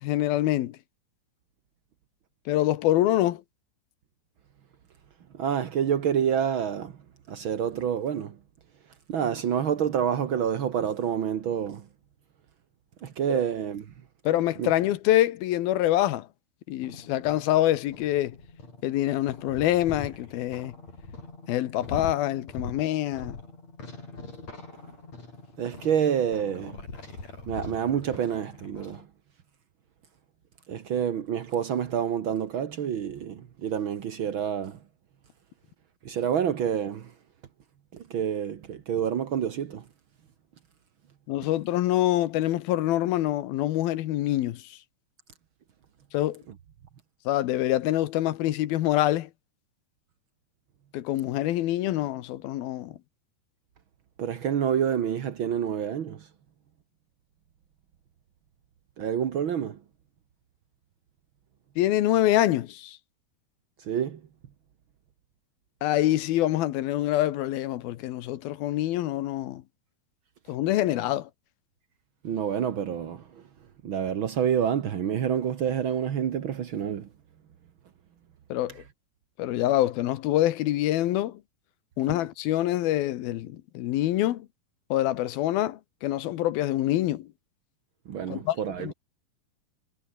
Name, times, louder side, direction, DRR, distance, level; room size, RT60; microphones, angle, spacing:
voice 1, 0.0-0.8 2.5-3.4 13.3-13.4 14.2-16.3 16.7-18.4 18.8-20.7 21.5-23.4 41.3-44.8 46.1-46.4 47.3-49.3 50.9-53.0 61.8-63.0 65.8-69.6 70.5-71.3 78.5-78.8 79.4-81.4 82.0-84.5 84.9-87.3 88.3-88.9, left 14 dB, 75° left, 2.9 m, -25 dB
voice 2, 5.3-7.0 7.3-8.4 9.1-11.8 13.0-13.8 14.6-14.7 25.6-26.8 27.5-29.0 30.7-34.8 36.0-37.1 37.9-39.8 54.2-56.3 59.0-59.8 63.8-64.2 72.2-73.4 73.8-77.1 88.1-88.9, right 8 dB, 75° right, 1.1 m, -28 dB
sound 1, 16.8-29.0, left 3 dB, 45° left, 8.9 m, -42 dB
omnidirectional pair, 4.5 m